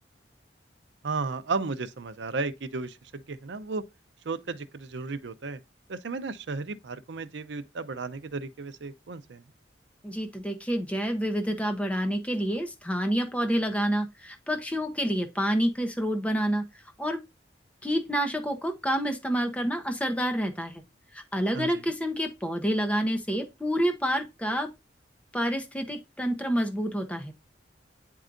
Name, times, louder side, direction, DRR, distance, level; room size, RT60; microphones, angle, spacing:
voice 1, 1.0-3.8 4.3-5.6 5.9-9.4 21.5-21.8, right 4 dB, 70° right, 0.6 m, -34 dB
voice 2, 10.0-16.6 17.0-17.2 17.8-20.7 21.1-24.7 25.3-27.3, equal, 10° left, 0.8 m, -28 dB
8.9 x 4.6 x 2.5 m
head